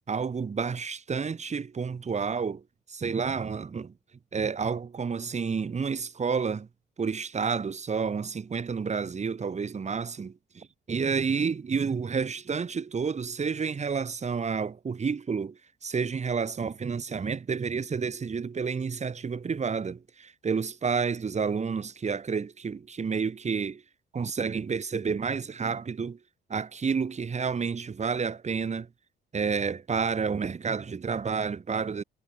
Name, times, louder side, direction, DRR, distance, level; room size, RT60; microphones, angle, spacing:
voice 1, 0.1-2.6 2.9-3.9 4.3-6.7 7.0-23.8 24.1-26.2 26.5-28.9 29.3-32.0, right 5 dB, 35° right, 1.9 m, -30 dB
cardioid pair, 90°, 20 cm